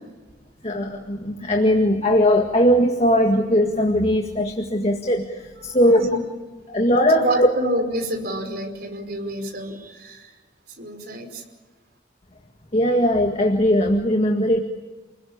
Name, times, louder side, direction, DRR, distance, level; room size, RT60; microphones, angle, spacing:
voice 1, 0.6-6.0 6.7-7.5 12.7-14.6, equal, 35° left, 3 dB, 2.0 m, -19 dB
voice 2, 5.6-6.2 7.1-10.3 10.8-11.4, equal, 55° right, 3 dB, 5.3 m, -28 dB
30.0 x 20.5 x 8.8 m, 1.3 s
head